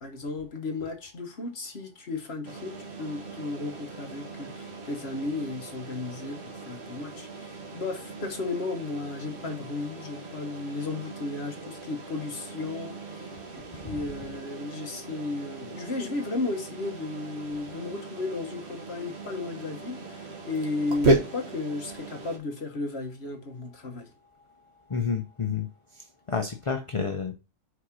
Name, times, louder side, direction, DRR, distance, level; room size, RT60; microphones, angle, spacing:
voice 1, 0.0-6.4 6.7-13.4 13.7-24.1, left 3 dB, 50° left, 1.5 m, -34 dB
sound 1, 2.4-22.4, right 2 dB, 55° right, 1.5 m, -35 dB
voice 2, 24.9-25.7 25.9-27.3, left 5 dB, 30° left, 0.6 m, -30 dB
4.9 x 4.9 x 5.9 m
omnidirectional pair, 1.4 m